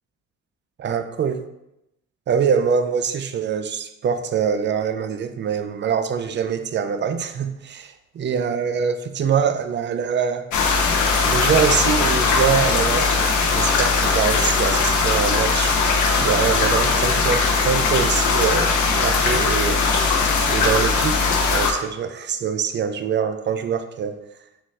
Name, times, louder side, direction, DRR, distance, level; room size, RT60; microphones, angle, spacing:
voice 1, 0.8-1.4 2.3-10.4 11.2-15.8 16.2-21.2 21.5-24.2, right 7 dB, 40° right, 9 dB, 0.4 m, -24 dB
sound 1, 10.5-21.7, left 4 dB, 75° left, 0.6 m, -19 dB
4.2 x 2.4 x 3.6 m, 0.88 s
cardioid pair, 90°, 30 cm